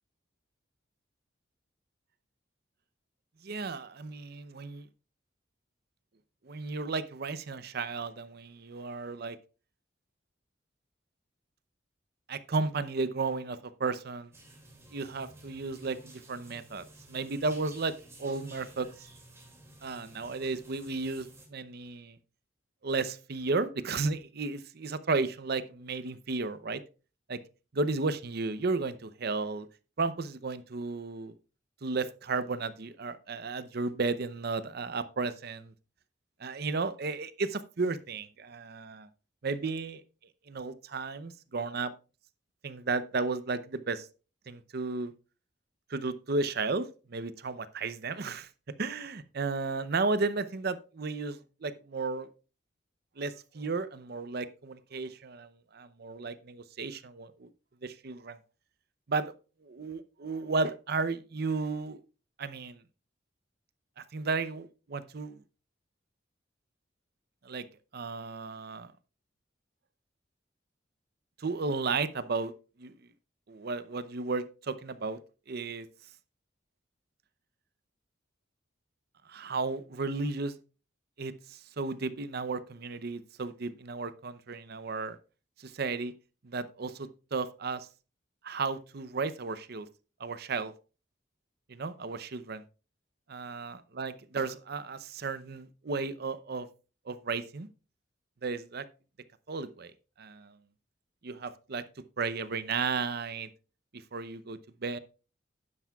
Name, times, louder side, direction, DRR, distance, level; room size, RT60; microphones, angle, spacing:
voice 1, 3.4-4.9 6.4-9.4 12.3-14.3 14.9-17.9 18.2-18.9 19.8-22.2 22.8-26.8 27.3-27.4 27.7-29.7 30.0-31.3 31.8-35.7 36.4-39.1 39.4-40.0 40.5-41.9 42.6-44.1 44.5-45.1 45.9-48.5 48.8-52.3 53.2-57.5 57.8-58.4 59.1-59.3 59.6-62.0 62.4-62.8 64.0-65.4 67.4-67.6 67.9-68.9 71.4-72.5 72.8-72.9 73.5-75.2 75.5-75.9 79.3-80.5 81.2-85.2 85.6-86.1 86.4-87.9 88.4-89.9 90.2-90.7 91.7-92.6 93.3-96.7 97.1-97.7 98.4-98.9 99.5-99.9 100.2-100.6 101.2-101.8 102.2-103.5 103.9-105.0, right 3 dB, 55° right, 0.7 m, -34 dB
sound 1, 14.3-21.5, right 1 dB, 15° right, 2.4 m, -53 dB
12.0 x 9.7 x 2.3 m
head